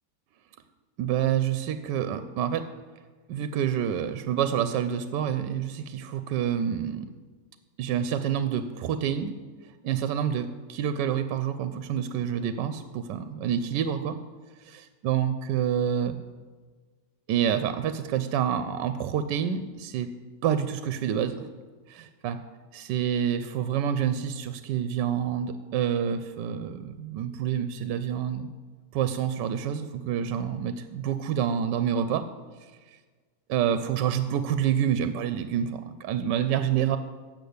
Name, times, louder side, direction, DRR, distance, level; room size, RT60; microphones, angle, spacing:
voice 1, 1.0-2.7 3.3-7.1 7.8-9.3 9.8-14.2 14.6-16.1 17.3-20.1 20.4-21.5 21.9-22.4 22.7-28.5 28.9-32.2 33.5-37.0, right 9 dB, 80° right, 10 dB, 1.2 m, -28 dB
8.4 x 6.7 x 7.9 m, 1.4 s
omnidirectional pair, 1.9 m